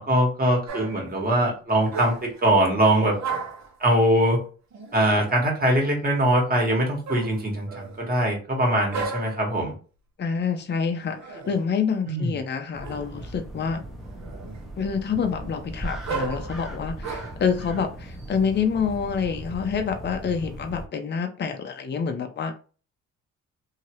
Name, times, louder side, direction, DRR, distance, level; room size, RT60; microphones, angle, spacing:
voice 1, 0.0-3.2 3.8-4.4 4.9-9.7 12.1-12.4, right 1 dB, 30° right, 0 dB, 1.6 m, -22 dB
sound 1, 0.7-1.1 1.8-2.4 2.8-3.7 4.7-5.5 7.1-8.1 8.9-9.5 11.0-11.7 12.8-13.4 13.9-14.7 15.1-17.5 18.1-19.2, right 4 dB, 65° right, 1.1 m, -36 dB
voice 2, 10.2-13.8 14.8-22.5, left 6 dB, 35° left, 5 dB, 0.6 m, -27 dB
sound 2, 12.7-20.9, right 1 dB, ahead, 0.9 m, -38 dB
2.8 x 2.8 x 3.0 m, 0.36 s
cardioid pair, 90°, 30 cm